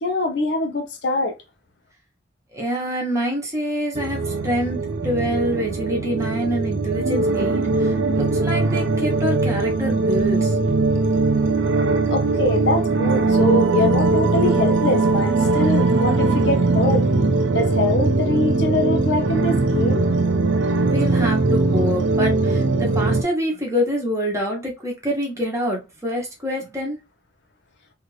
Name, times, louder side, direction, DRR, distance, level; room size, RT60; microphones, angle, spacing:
voice 1, 0.0-1.3 12.1-17.1 17.5-20.1, left 2 dB, 60° left, 0.7 m, -23 dB
voice 2, 2.5-4.8 5.0-10.6 20.9-27.0, equal, 15° right, 1.0 m, -26 dB
sound 1, 3.9-23.2, right 3 dB, 75° right, 0.5 m, -20 dB
2.8 x 2.5 x 3.1 m
head